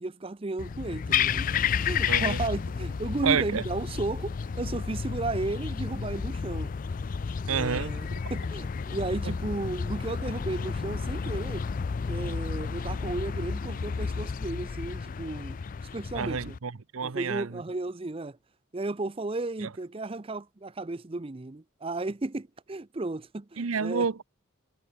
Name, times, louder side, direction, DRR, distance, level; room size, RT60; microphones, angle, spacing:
voice 1, 0.0-6.7 7.5-11.7 12.1-15.6 15.9-16.6 17.0-18.4 18.7-24.1, right 2 dB, 25° right, 0.6 m, -34 dB
sound 1, 0.6-16.6, left 6 dB, 40° left, 0.3 m, -31 dB
voice 2, 2.1-2.4 3.2-3.6 7.5-7.9 9.3-9.4 16.1-17.5 23.6-24.2, right 6 dB, 85° right, 0.8 m, -29 dB
head